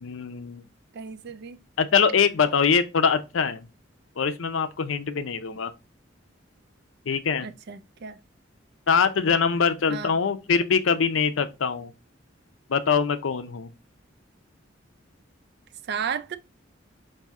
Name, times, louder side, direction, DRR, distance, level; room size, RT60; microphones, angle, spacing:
voice 1, 0.0-0.6 1.8-3.7 4.2-5.7 7.1-7.5 8.9-11.9 12.7-13.7, left 6 dB, 85° left, 0.5 m, -23 dB
voice 2, 0.9-1.6 7.4-8.2 9.9-10.1 15.9-16.4, right 7 dB, 55° right, 0.4 m, -33 dB
5.5 x 2.7 x 3.5 m
head